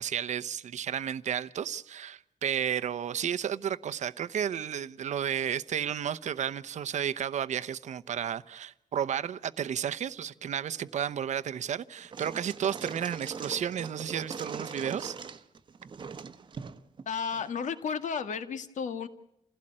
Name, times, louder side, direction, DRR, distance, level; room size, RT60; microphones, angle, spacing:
voice 1, 0.0-15.2, right 9 dB, 65° right, 0.8 m, -32 dB
sound 1, 12.0-17.5, right 5 dB, 35° right, 1.0 m, -41 dB
voice 2, 17.1-19.1, left 6 dB, 65° left, 1.8 m, -33 dB
29.0 x 16.5 x 8.8 m
wide cardioid pair, 160°, 13 cm